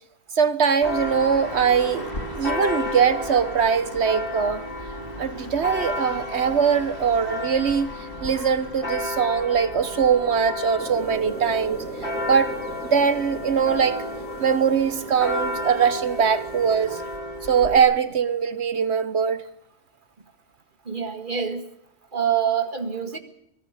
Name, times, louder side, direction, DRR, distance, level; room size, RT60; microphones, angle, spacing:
voice 1, 0.4-4.6 5.2-7.9 8.2-11.8 12.3-12.5 12.9-14.0 14.4-17.0 17.5-19.5, right 6 dB, 60° right, 1.5 m, -21 dB
Church bell, 0.8-17.8, left 1 dB, 45° left, 3.5 m, -32 dB
sound 1, 10.8-17.1, right 1 dB, 10° left, 4.0 m, -39 dB
voice 2, 20.9-21.6 22.1-23.2, right 8 dB, 40° right, 2.1 m, -25 dB
24.5 x 17.5 x 6.7 m
omnidirectional pair, 1.3 m